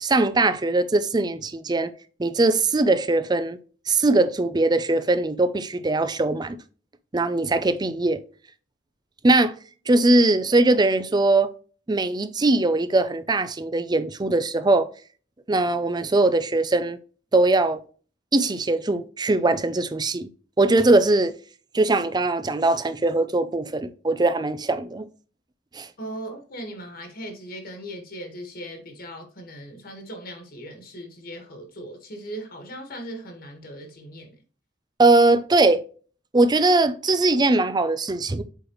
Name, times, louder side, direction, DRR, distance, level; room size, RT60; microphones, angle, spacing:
voice 1, 0.0-1.9 2.2-3.6 3.9-6.6 7.1-8.2 9.2-9.5 9.9-11.5 11.9-14.9 15.5-17.0 17.3-17.8 18.3-20.3 20.6-21.3 21.7-25.1 25.7-25.9 35.0-35.8 36.3-38.4, right 2 dB, 20° right, 0.5 m, -21 dB
voice 2, 26.0-34.4, right 1 dB, 55° left, 1.6 m, -38 dB
8.1 x 4.0 x 3.0 m
head